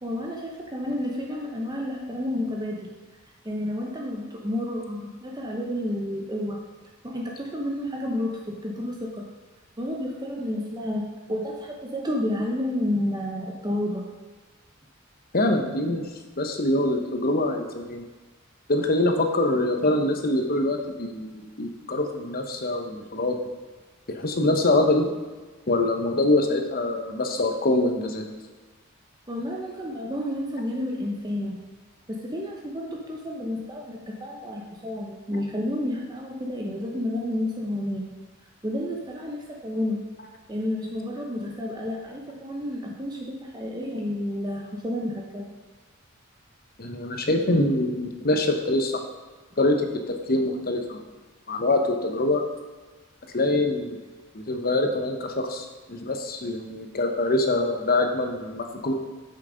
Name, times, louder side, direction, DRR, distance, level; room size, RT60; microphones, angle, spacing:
voice 1, 0.0-2.9 3.4-6.6 7.0-9.2 9.8-14.1 29.3-31.6 32.1-38.1 38.6-40.0 40.5-45.5, left 1 dB, 20° right, -1 dB, 0.9 m, -30 dB
voice 2, 15.3-16.1 16.4-18.0 18.7-23.4 24.1-25.1 25.7-28.3 46.8-49.0 49.6-51.0 51.5-52.4 53.3-54.0 54.3-58.9, left 2 dB, 45° left, 4 dB, 1.1 m, -24 dB
8.6 x 6.3 x 5.1 m, 1.3 s
head